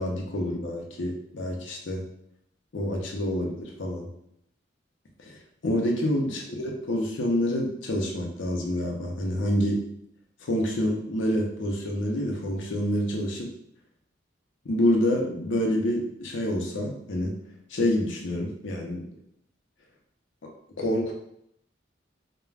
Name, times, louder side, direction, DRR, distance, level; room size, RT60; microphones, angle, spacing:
voice 1, 0.0-2.0 2.7-4.1 5.2-5.4 5.6-9.8 10.4-13.5 14.6-17.4 17.7-19.0 20.4-20.5 20.8-21.1, left 1 dB, 75° left, 1 dB, 0.6 m, -27 dB
3.2 x 2.1 x 2.3 m, 0.73 s
head